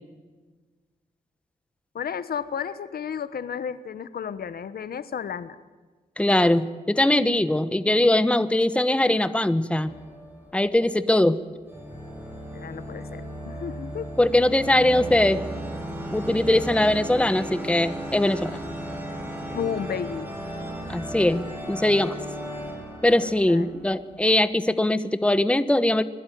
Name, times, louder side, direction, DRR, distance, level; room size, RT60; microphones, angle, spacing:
voice 1, 1.9-5.6 12.5-14.1 19.5-20.3 23.5-23.8, left 7 dB, 70° left, 14 dB, 1.2 m, -32 dB
voice 2, 6.2-9.9 10.5-11.4 14.2-15.4 16.1-18.6 20.9-22.2 23.0-26.0, left 1 dB, 5° left, 13 dB, 1.1 m, -21 dB
sound 1, 9.8-11.1 11.7-24.3, equal, 10° right, 7.3 m, -35 dB
25.0 x 20.5 x 9.4 m, 1.4 s
cardioid pair, 85°, 16 cm